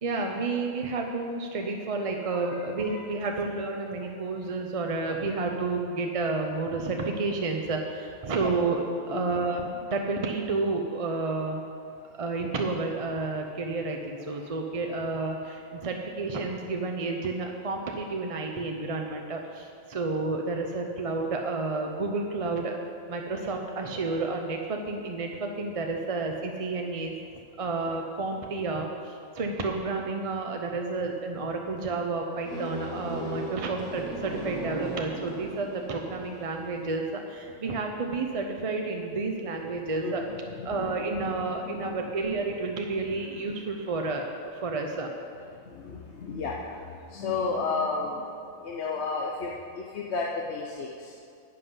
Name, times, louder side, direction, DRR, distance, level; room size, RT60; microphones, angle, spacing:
voice 1, 0.0-11.6 12.1-22.7 23.1-27.1 27.6-40.2 40.6-44.3 44.6-45.1, right 3 dB, 40° right, 2 dB, 0.5 m, -30 dB
sound 1, 32.4-36.5, right 1 dB, 5° left, 2.6 m, -37 dB
voice 2, 40.0-41.3 41.6-41.9 45.6-48.3 48.6-51.1, left 4 dB, 60° left, -1 dB, 1.0 m, -33 dB
11.0 x 7.7 x 5.5 m, 2.4 s
omnidirectional pair, 1.4 m